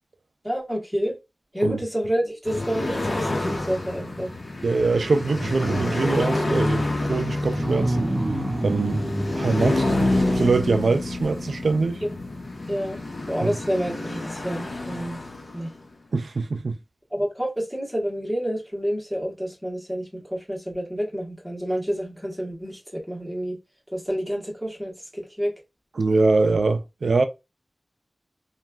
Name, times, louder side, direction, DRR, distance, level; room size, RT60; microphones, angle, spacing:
voice 1, 0.4-1.2 1.5-4.3 12.0-12.1 12.7-13.0 13.3-15.2 15.5-15.7 17.1-23.6 23.9-25.5, equal, 5° right, 1.2 m, -28 dB
sound 1, 2.5-15.9, left 2 dB, 65° left, 0.9 m, -28 dB
voice 2, 4.6-8.1 8.6-9.0 9.3-12.0 13.4-13.5 16.1-16.8 26.0-27.2, right 3 dB, 90° right, 0.4 m, -23 dB
sound 2, 5.3-6.6 7.5-10.7 11.2-11.3, right 1 dB, 35° right, 0.6 m, -29 dB
3.1 x 2.3 x 2.3 m
wide cardioid pair, 75°, 0 cm